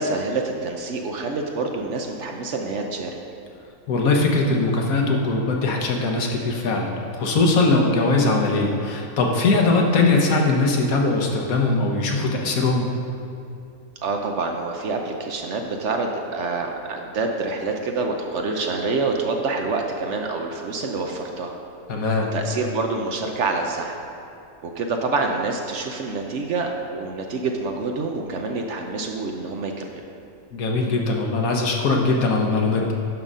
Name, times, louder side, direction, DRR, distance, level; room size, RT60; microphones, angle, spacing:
voice 1, 0.0-3.1 14.0-21.5 22.3-23.9 24.6-30.0, right 3 dB, 60° right, 3 dB, 0.9 m, -27 dB
voice 2, 3.9-12.9 21.9-22.3 30.5-32.9, left 3 dB, 75° left, 1 dB, 1.4 m, -21 dB
11.0 x 3.8 x 5.4 m, 2.7 s
omnidirectional pair, 1.5 m